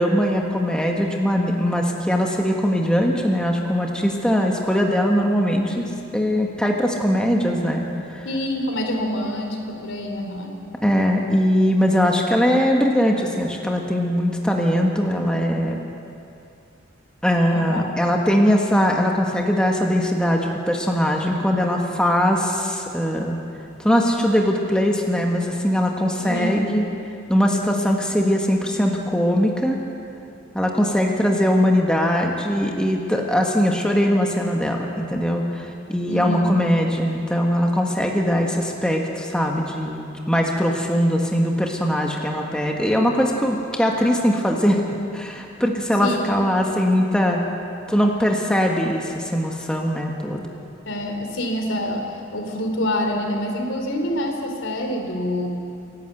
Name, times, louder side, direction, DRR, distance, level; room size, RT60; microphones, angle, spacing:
voice 1, 0.0-8.3 10.8-15.8 17.2-23.4 23.8-26.8 27.3-29.8 30.5-44.8 45.1-47.4 47.9-50.4, equal, 5° left, 0 dB, 1.5 m, -21 dB
voice 2, 8.2-10.6 17.5-17.8 26.2-26.8 36.1-36.5 46.0-46.5 50.9-55.5, left 1 dB, 80° left, 3 dB, 3.1 m, -26 dB
28.0 x 11.5 x 8.0 m, 2.6 s
head